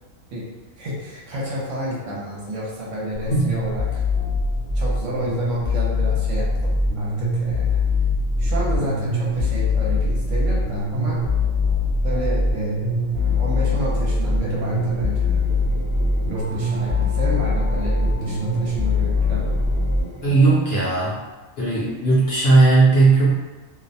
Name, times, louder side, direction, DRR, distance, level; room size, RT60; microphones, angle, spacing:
voice 1, 0.8-4.0 4.7-6.5 7.0-7.8 8.4-11.2 12.0-13.0 13.3-15.4 16.3-19.5, equal, 65° right, -5 dB, 0.9 m, -30 dB
sound 1, 3.1-20.0, left 2 dB, 35° right, 0.7 m, -22 dB
sound 2, 13.1-20.6, equal, 90° right, 0.4 m, -37 dB
voice 2, 20.2-21.2 21.6-23.3, right 3 dB, 55° left, -8 dB, 0.8 m, -16 dB
2.4 x 2.1 x 2.6 m, 1.2 s
omnidirectional pair, 1.5 m